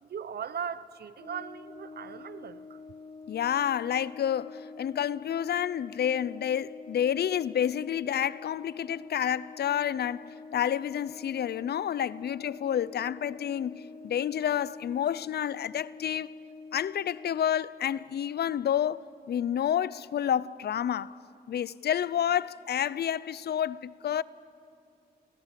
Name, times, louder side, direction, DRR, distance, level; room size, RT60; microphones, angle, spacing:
voice 1, 0.0-2.8, right 7 dB, 70° right, 1.0 m, -38 dB
Brass instrument, 1.2-17.6, left 4 dB, 35° left, 1.3 m, -47 dB
voice 2, 3.3-16.3 16.7-19.0 19.3-21.2 21.5-24.2, left 9 dB, 75° left, 0.5 m, -29 dB
29.5 x 21.5 x 7.6 m
cardioid pair, 75°, 17 cm